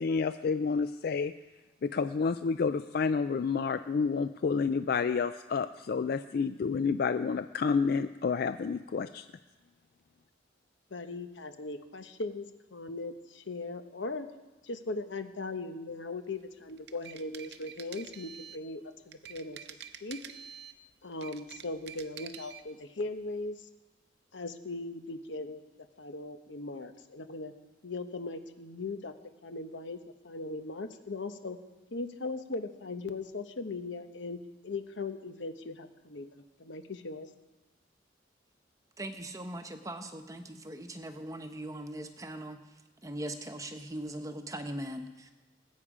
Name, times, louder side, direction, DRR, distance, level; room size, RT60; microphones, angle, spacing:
voice 1, 0.0-1.3 1.8-9.3, left 5 dB, 55° left, 11 dB, 0.3 m, -29 dB
voice 2, 10.9-14.3 14.6-19.6 20.0-20.2 21.0-23.7 24.3-25.6 26.0-27.5 27.8-29.1 29.4-30.0 30.2-31.6 31.9-34.4 34.6-37.3, left 3 dB, 75° left, 8 dB, 1.0 m, -39 dB
sound 1, 16.7-18.7 19.1-20.8 21.1-22.7, right 8 dB, 60° right, 0.7 m, -47 dB
voice 3, 39.0-42.6 43.0-45.3, right 1 dB, 20° right, 6 dB, 0.9 m, -40 dB
19.5 x 8.6 x 4.9 m, 1.1 s
head